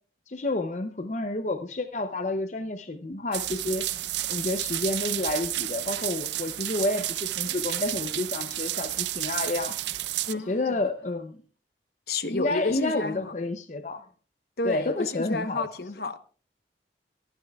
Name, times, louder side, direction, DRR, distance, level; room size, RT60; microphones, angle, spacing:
voice 1, 0.3-3.8 4.3-9.8 10.5-11.4 12.3-14.0 14.6-15.7, left 2 dB, 40° left, 0.6 m, -30 dB
sound 1, 3.3-10.3, right 14 dB, 75° right, 0.5 m, -31 dB
sound 2, 6.8-11.4, equal, 5° right, 5.0 m, -59 dB
voice 2, 10.3-10.8 12.1-13.3 14.6-16.2, left 3 dB, 60° left, 1.0 m, -31 dB
23.0 x 9.9 x 2.3 m
head